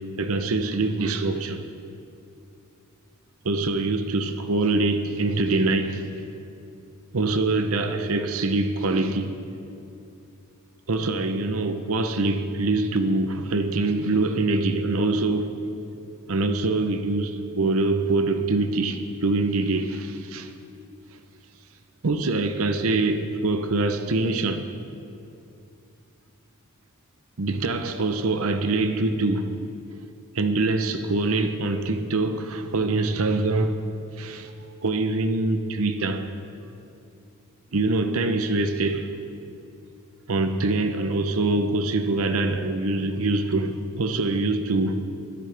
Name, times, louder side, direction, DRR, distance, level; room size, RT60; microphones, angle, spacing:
voice 1, 0.2-1.6 3.4-6.1 7.1-9.3 10.9-15.5 16.3-20.5 22.0-24.7 27.4-29.5 30.3-33.8 34.2-34.5 34.8-36.3 37.7-39.0 40.3-45.0, right 2 dB, 70° right, 0.7 m, -24 dB
13.5 x 13.0 x 3.4 m
head